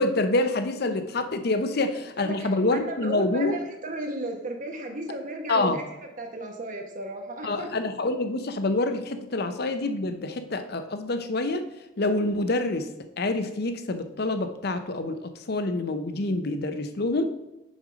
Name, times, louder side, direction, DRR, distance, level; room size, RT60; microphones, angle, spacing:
voice 1, 0.0-3.6 5.5-5.8 7.4-11.6 12.0-12.9 13.2-17.2, left 2 dB, 55° left, 9 dB, 0.7 m, -26 dB
voice 2, 2.2-5.8 6.2-7.7, right 2 dB, 45° right, 4 dB, 1.0 m, -35 dB
6.3 x 5.3 x 5.0 m, 0.98 s
head